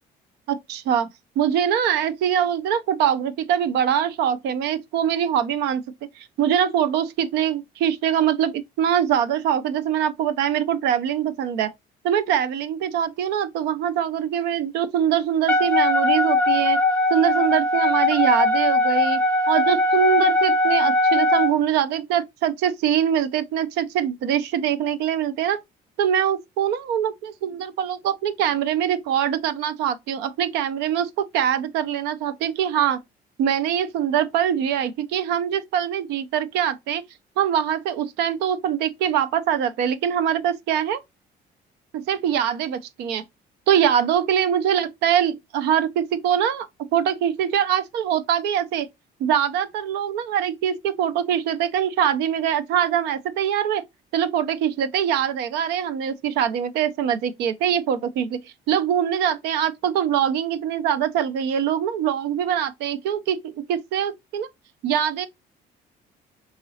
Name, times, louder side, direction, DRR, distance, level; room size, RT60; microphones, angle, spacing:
voice 1, 0.5-1.1 1.4-5.8 6.2-11.7 12.0-16.8 17.1-19.2 19.5-25.6 26.0-33.0 33.4-37.0 37.4-41.0 42.1-43.2 43.7-46.7 46.9-48.9 49.2-53.8 54.1-58.4 58.7-64.5 64.8-65.3, right 9 dB, 90° right, 0.5 m, -23 dB
Wind instrument woodwind instrument, 15.5-21.5, left 1 dB, 5° left, 0.6 m, -20 dB
3.8 x 3.0 x 2.7 m
cardioid pair, 110°, 17 cm